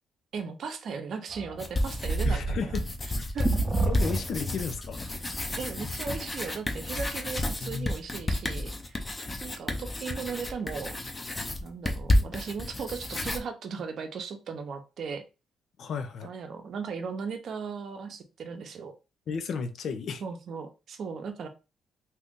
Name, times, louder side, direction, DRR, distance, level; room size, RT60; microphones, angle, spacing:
voice 1, 0.3-2.8 3.3-3.6 5.6-9.1 9.4-11.0 11.6-15.2 16.2-18.9 20.2-21.5, right 5 dB, 60° right, 0.7 m, -37 dB
sound 1, 1.3-4.7, right 2 dB, 20° right, 0.7 m, -29 dB
sound 2, 1.6-2.4 2.7-13.4, left 1 dB, 25° left, 0.6 m, -31 dB
voice 2, 2.2-2.9 3.2-3.3 3.9-5.1 7.6-7.9 15.8-16.3 19.3-20.2, left 5 dB, 65° left, 0.5 m, -33 dB
2.8 x 2.5 x 3.6 m
cardioid pair, 90°, 0 cm